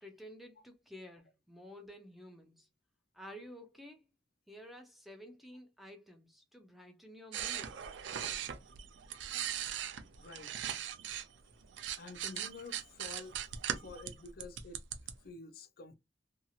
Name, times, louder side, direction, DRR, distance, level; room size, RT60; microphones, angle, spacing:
voice 1, 0.0-2.7 3.1-4.1 4.5-7.8, equal, ahead, 0.5 m, -52 dB
sound 1, 7.3-11.3 11.6-15.1, right 9 dB, 75° right, 0.4 m, -39 dB
voice 2, 10.2-10.5 12.0-13.4 13.8-14.8 15.2-15.9, left 3 dB, 50° left, 0.5 m, -49 dB
2.8 x 2.8 x 2.3 m
head